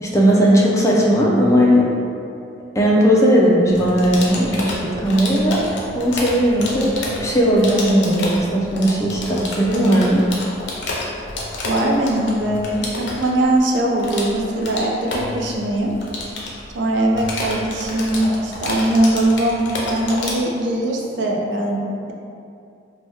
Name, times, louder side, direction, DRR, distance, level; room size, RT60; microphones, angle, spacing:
voice 1, 0.0-1.9 2.8-10.2, equal, 15° left, -4 dB, 0.3 m, -17 dB
sound 1, 3.7-20.3, left 2 dB, 70° left, 0.5 m, -30 dB
voice 2, 11.6-15.9 16.7-22.1, right 1 dB, 75° right, -1 dB, 0.4 m, -21 dB
2.7 x 2.2 x 3.4 m, 2.6 s
head